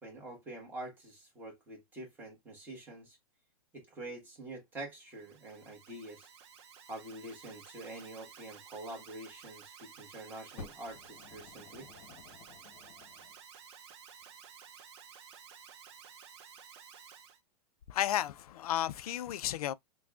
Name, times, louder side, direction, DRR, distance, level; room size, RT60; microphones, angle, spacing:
voice 1, 0.0-3.2 3.7-6.3 6.9-11.9, right 1 dB, 10° right, 1.4 m, -46 dB
Alarm, 5.0-17.4, right 7 dB, 45° right, 0.8 m, -54 dB
Fire, 10.6-13.4 14.2-14.3, left 3 dB, 30° left, 1.0 m, -52 dB
voice 2, 17.9-19.7, left 12 dB, 75° left, 0.5 m, -33 dB
5.8 x 2.3 x 2.4 m
supercardioid pair, 170°, 19 cm